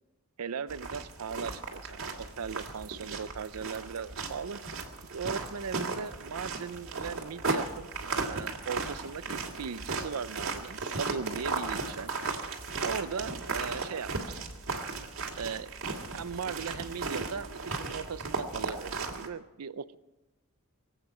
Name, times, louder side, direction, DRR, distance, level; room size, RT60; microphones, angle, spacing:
voice 1, 0.4-4.6 5.1-12.1 12.8-14.1 15.4-15.7 16.1-19.9, right 6 dB, 90° right, 16 dB, 0.6 m, -38 dB
sound 1, 0.7-19.3, right 3 dB, 60° right, 2.0 m, -36 dB
24.0 x 8.5 x 5.7 m, 1.0 s
head